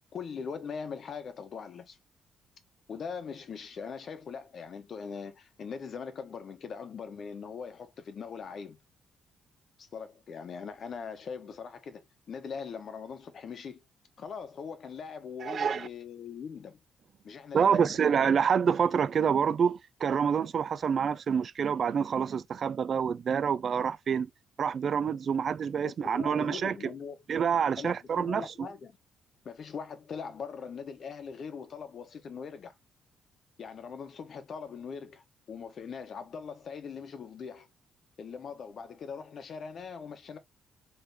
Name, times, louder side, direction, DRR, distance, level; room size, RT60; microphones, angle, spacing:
voice 1, 0.1-2.0 2.9-8.8 9.8-13.8 14.2-16.8 17.2-18.0 25.8-27.2 27.8-29.0 29.4-32.7 33.6-37.7 38.2-40.4, left 6 dB, 55° left, 0.9 m, -41 dB
voice 2, 15.4-15.9 17.5-24.3 24.6-26.8 27.3-28.7, right 7 dB, 50° right, 0.3 m, -27 dB
3.7 x 3.1 x 2.7 m
cardioid pair, 90°, 0 cm